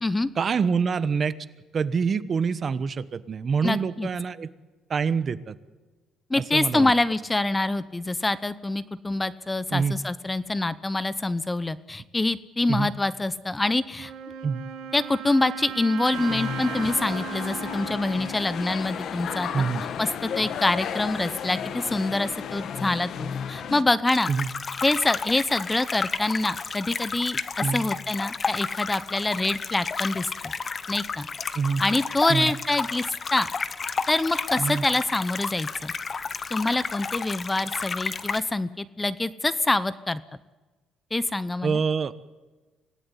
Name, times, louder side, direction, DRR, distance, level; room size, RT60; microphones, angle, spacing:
voice 1, 0.4-1.3 1.7-4.5 4.9-5.5 6.4-6.9 9.7-10.0 12.7-12.9 14.4-14.6 19.5-19.8 24.3-24.5 27.6-27.8 31.5-31.8 32.3-32.5 34.6-34.9 41.6-42.1, right 5 dB, 40° right, 15 dB, 1.1 m, -25 dB
voice 2, 3.6-4.1 6.3-14.1 14.9-19.5 20.0-24.3 24.8-30.3 30.9-31.3 31.8-33.5 34.1-35.9 36.5-40.2 41.1-41.8, left 2 dB, 15° left, 16 dB, 0.7 m, -25 dB
Wind instrument woodwind instrument, 14.0-19.7, right 8 dB, 80° right, 3.1 m, -37 dB
sound 1, 16.1-23.8, left 7 dB, 55° left, 1.5 m, -33 dB
sound 2, 24.1-38.4, left 5 dB, 30° left, 1.0 m, -32 dB
26.0 x 17.5 x 9.7 m, 1.3 s
cardioid pair, 120°, 0 cm